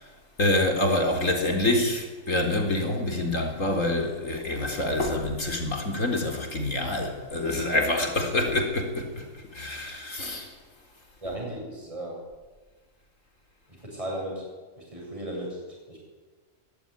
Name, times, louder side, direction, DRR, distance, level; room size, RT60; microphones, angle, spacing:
voice 1, 0.4-9.3 9.5-10.5, left 1 dB, 65° left, 4.4 m, -26 dB
voice 2, 11.2-12.2 13.7-14.4 14.8-16.0, right 1 dB, 25° right, 8.1 m, -36 dB
22.0 x 19.0 x 10.0 m
omnidirectional pair, 1.4 m